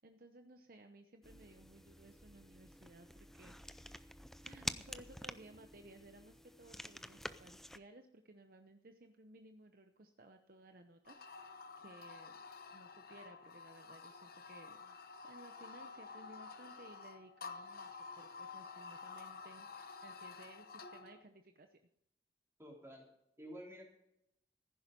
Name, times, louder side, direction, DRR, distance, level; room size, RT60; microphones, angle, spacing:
voice 1, 0.0-4.2 4.4-12.4 12.7-15.0 15.2-21.8, right 2 dB, 50° right, 6 dB, 0.8 m, -59 dB
sound 1, 1.2-7.8, left 1 dB, ahead, 0.4 m, -49 dB
sound 2, 11.1-21.2, left 4 dB, 50° left, 0.9 m, -51 dB
voice 2, 22.6-23.1 23.4-23.8, equal, 15° right, -2 dB, 3.7 m, -50 dB
15.0 x 10.5 x 5.3 m, 0.80 s
head